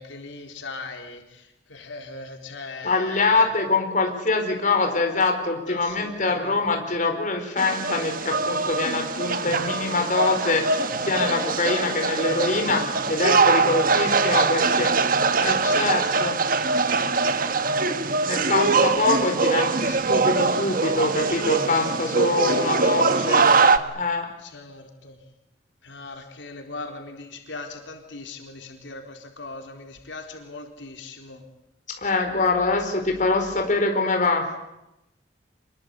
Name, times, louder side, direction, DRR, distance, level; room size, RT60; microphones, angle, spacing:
voice 1, 0.0-3.5 5.7-7.0 8.8-9.1 13.5-15.3 15.8-17.3 22.5-24.0 24.4-25.2 25.8-31.4, left 3 dB, 90° left, 3 dB, 4.0 m, -39 dB
voice 2, 2.8-14.9 15.4-16.3 18.2-23.5 23.9-24.3 32.0-34.5, left 3 dB, 45° left, 3 dB, 4.6 m, -24 dB
sound 1, 7.6-23.8, right 4 dB, 50° right, 1.4 m, -22 dB
27.0 x 22.0 x 8.3 m, 0.91 s
head